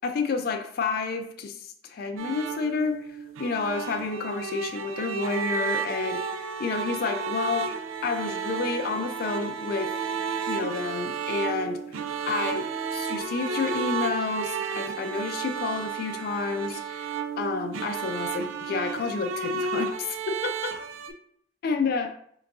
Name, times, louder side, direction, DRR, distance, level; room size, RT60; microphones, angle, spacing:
voice 1, 0.0-9.9 10.5-12.0 12.2-17.1 17.4-20.7 21.6-22.1, left 4 dB, 50° left, 6 dB, 0.3 m, -30 dB
sound 1, 2.2-21.1, right 5 dB, 80° right, 0.4 m, -32 dB
3.7 x 3.5 x 2.6 m, 0.68 s
head